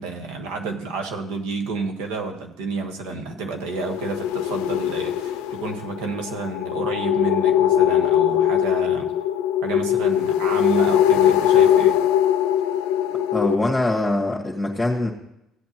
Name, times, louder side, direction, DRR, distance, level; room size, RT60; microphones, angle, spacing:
voice 1, 0.0-9.1 9.6-12.0, right 4 dB, 90° right, 4 dB, 1.4 m, -30 dB
sound 1, 3.7-13.6, left 10 dB, 90° left, 0.4 m, -21 dB
voice 2, 13.3-15.1, left 2 dB, 10° left, -2 dB, 1.8 m, -23 dB
16.0 x 8.4 x 3.0 m, 0.80 s
supercardioid pair, 90°, 0 cm